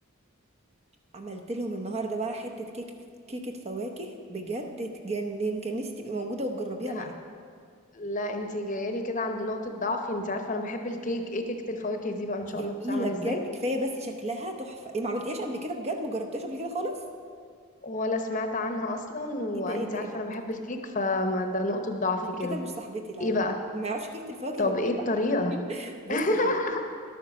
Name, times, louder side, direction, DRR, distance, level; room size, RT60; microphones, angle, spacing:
voice 1, 1.1-3.0 3.3-7.1 12.5-17.0 19.5-20.2 22.4-23.4 23.7-24.7 25.5-26.5, right 1 dB, 30° right, 3 dB, 0.8 m, -33 dB
voice 2, 7.9-13.4 17.8-22.6 23.2-23.6 24.6-25.5 26.1-26.8, left 2 dB, 35° left, 5 dB, 0.9 m, -29 dB
11.5 x 9.1 x 6.0 m, 2.1 s
head